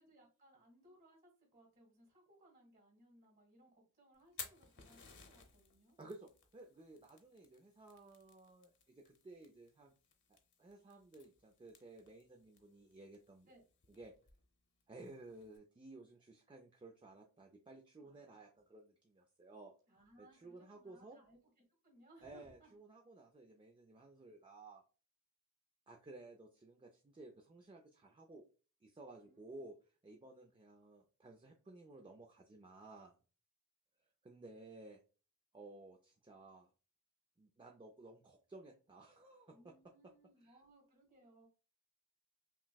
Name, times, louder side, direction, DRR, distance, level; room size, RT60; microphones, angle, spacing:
voice 1, 0.0-5.9 13.5-13.6 18.0-18.3 18.5-18.6 19.9-21.4 21.8-22.7 29.2-29.6 39.5-41.5, right 1 dB, 40° right, -2 dB, 1.7 m, -66 dB
Fire, 4.1-15.6, left 7 dB, 55° left, 0.7 m, -58 dB
voice 2, 6.0-9.9 10.6-13.5 13.9-14.1 14.9-19.7 20.2-21.2 22.2-24.8 25.9-28.4 28.8-29.8 30.0-33.2 34.2-35.0 35.5-36.7 37.4-39.7 40.4-40.6, right 2 dB, 20° right, 2 dB, 0.3 m, -56 dB
5.8 x 2.1 x 2.2 m, 0.36 s
head